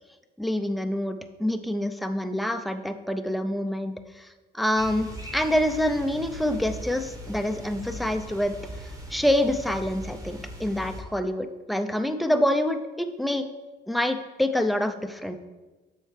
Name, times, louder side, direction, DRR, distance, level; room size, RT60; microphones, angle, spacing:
voice 1, 0.4-4.3 4.5-8.5 9.1-13.4 13.9-15.3, left 1 dB, ahead, 8 dB, 0.5 m, -26 dB
sound 1, 4.8-11.0, equal, 15° right, 1.1 m, -40 dB
7.6 x 5.6 x 3.2 m, 1.2 s
cardioid pair, 90°, 20 cm